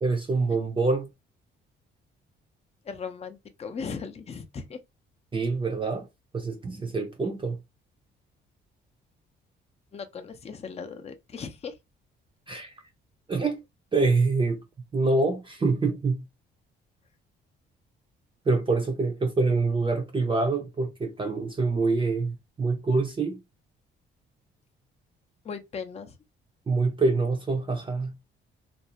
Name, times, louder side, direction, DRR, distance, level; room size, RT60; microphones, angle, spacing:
voice 1, 0.0-1.1 5.3-6.1 6.3-7.6 12.5-12.7 13.3-13.6 13.9-14.6 14.9-16.2 18.5-23.4 26.7-28.1, right 3 dB, 25° right, 0.5 m, -25 dB
voice 2, 2.8-4.8 9.9-11.8 25.4-26.2, left 5 dB, 30° left, 0.5 m, -38 dB
2.5 x 2.0 x 2.8 m
cardioid pair, 90°, 20 cm